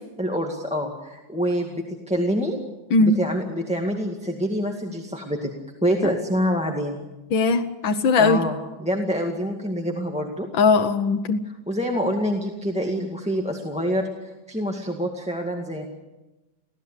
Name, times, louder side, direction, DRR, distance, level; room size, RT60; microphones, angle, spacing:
voice 1, 0.2-2.6 3.0-5.5 5.8-7.0 8.2-10.5 11.7-15.9, equal, 5° right, 1 dB, 1.8 m, -26 dB
voice 2, 7.3-8.4 10.6-11.4, left 4 dB, 90° left, 4 dB, 1.8 m, -19 dB
24.5 x 16.5 x 8.3 m, 1.1 s
omnidirectional pair, 2.0 m